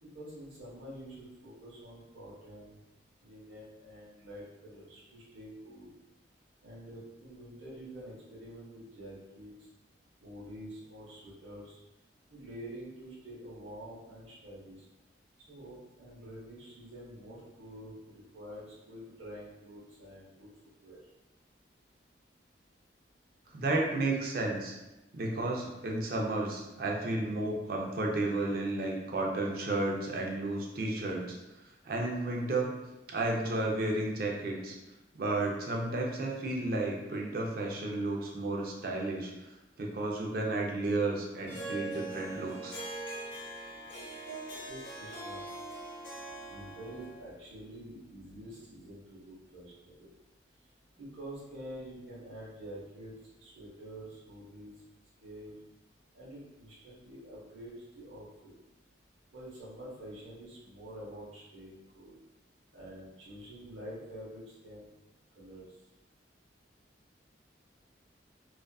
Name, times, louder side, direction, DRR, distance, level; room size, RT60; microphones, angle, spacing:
voice 1, 0.0-2.8 3.2-6.0 6.6-9.7 10.2-11.8 12.3-14.8 15.5-20.5 20.8-21.0 44.7-45.4 46.5-50.1 51.0-53.1 53.4-54.7 55.2-55.5 56.1-58.5 59.3-62.2 62.7-64.9 65.3-65.6, equal, 85° right, -7 dB, 0.8 m, -47 dB
voice 2, 23.5-24.8 25.1-31.4 31.8-32.7 33.1-34.7 35.1-39.3 39.8-42.8, right 2 dB, 50° right, -1 dB, 0.4 m, -32 dB
Harp, 41.5-47.3, right 2 dB, 80° left, 0.8 m, -42 dB
2.4 x 2.3 x 2.2 m, 1.0 s
head